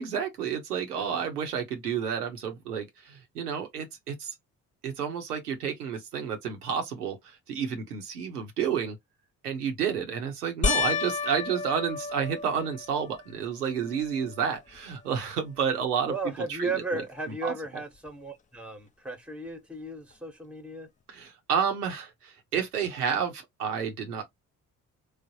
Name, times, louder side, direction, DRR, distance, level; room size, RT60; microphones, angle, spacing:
voice 1, 0.0-4.3 4.8-9.0 9.4-16.1 16.5-16.7 17.4-17.5 21.1-24.3, right 7 dB, 90° right, 0.6 m, -30 dB
sound 1, 10.6-13.2 13.8-14.4 14.8-14.9 18.1-18.2, left 5 dB, 20° left, 0.4 m, -31 dB
voice 2, 16.1-20.9, right 2 dB, 5° right, 0.8 m, -35 dB
3.1 x 2.1 x 2.6 m
figure-of-eight pair, 45°, 45 cm